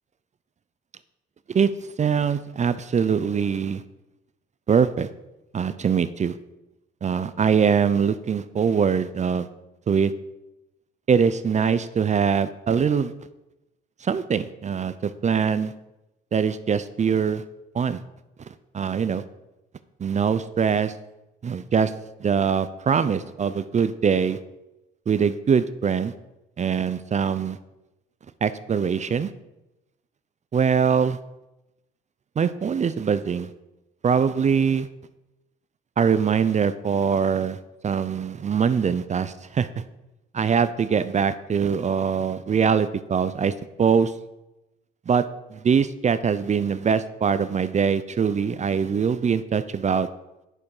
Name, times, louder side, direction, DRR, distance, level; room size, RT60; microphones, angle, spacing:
voice 1, 2.0-3.8 4.7-5.1 5.5-6.3 7.0-9.5 9.9-10.1 11.1-13.1 14.0-15.7 16.3-17.4 17.7-18.0 18.7-19.2 20.0-20.9 21.4-21.9 22.2-24.4 25.1-26.1 26.6-27.6 28.4-29.3 30.5-31.2 32.4-33.5 34.0-34.9 36.0-37.6 37.8-39.7 40.3-43.5 43.8-44.1 45.1-45.2 45.5-50.1, right 6 dB, 35° right, 13 dB, 0.5 m, -22 dB
9.9 x 7.2 x 4.9 m, 0.95 s
cardioid pair, 90°, 20 cm